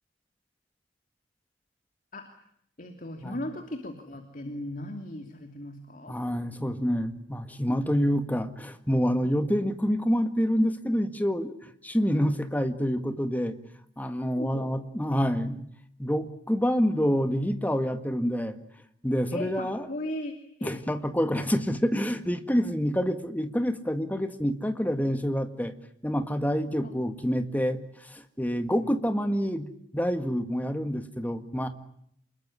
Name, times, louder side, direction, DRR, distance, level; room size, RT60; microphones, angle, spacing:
voice 1, 2.1-2.4 2.8-6.1 14.3-14.7 19.3-20.3 20.6-20.8 26.8-26.9 28.8-28.9, left 1 dB, 45° left, 5 dB, 2.8 m, -37 dB
voice 2, 6.1-13.6 14.0-15.7 16.0-18.6 19.0-19.9 20.6-25.7 26.0-29.7 29.9-31.7, equal, 10° left, 8 dB, 1.9 m, -27 dB
28.0 x 21.5 x 9.9 m, 0.70 s
head